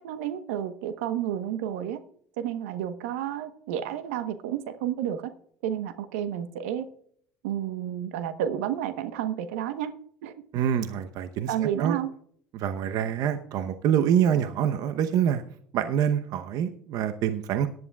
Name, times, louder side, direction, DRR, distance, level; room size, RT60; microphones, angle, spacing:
voice 1, 0.0-2.0 2.4-5.3 5.6-6.9 7.4-9.9 10.2-10.3 11.5-12.1, right 10 dB, 80° right, 10 dB, 1.1 m, -31 dB
voice 2, 10.5-12.0 12.5-15.4 15.7-17.7, right 9 dB, 60° right, 8 dB, 0.8 m, -26 dB
18.0 x 10.5 x 2.4 m, 0.62 s
hypercardioid pair, 75°, 7 cm